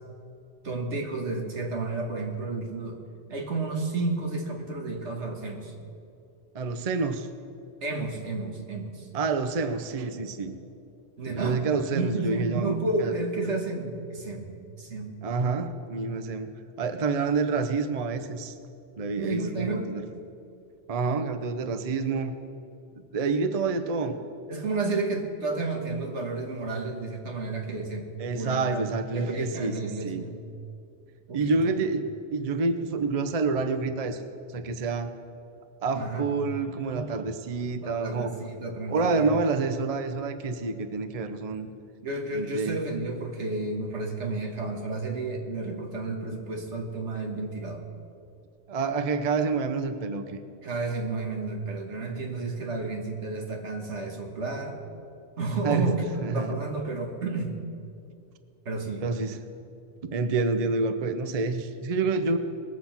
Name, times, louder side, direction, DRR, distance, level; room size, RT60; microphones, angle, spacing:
voice 1, 0.6-3.0 3.3-5.7 7.8-9.1 11.2-11.6 11.9-15.1 19.2-19.9 24.5-28.1 28.3-30.4 31.3-31.7 35.9-36.3 37.8-39.3 42.0-47.9 50.6-54.8 55.4-57.6 58.7-59.1, right 3 dB, 80° right, 2 dB, 1.9 m, -31 dB
voice 2, 6.5-7.3 9.1-10.6 11.3-13.1 15.2-16.5 16.8-18.5 19.0-20.0 20.9-22.3 23.1-24.2 28.2-29.7 30.0-30.2 31.3-34.2 34.5-35.1 35.8-38.3 38.9-41.7 42.3-42.8 48.7-50.4 55.6-55.9 56.2-56.6 59.0-59.4 60.0-62.4, right 4 dB, 40° right, 9 dB, 0.7 m, -28 dB
20.5 x 7.7 x 5.9 m, 2.6 s
omnidirectional pair, 1.2 m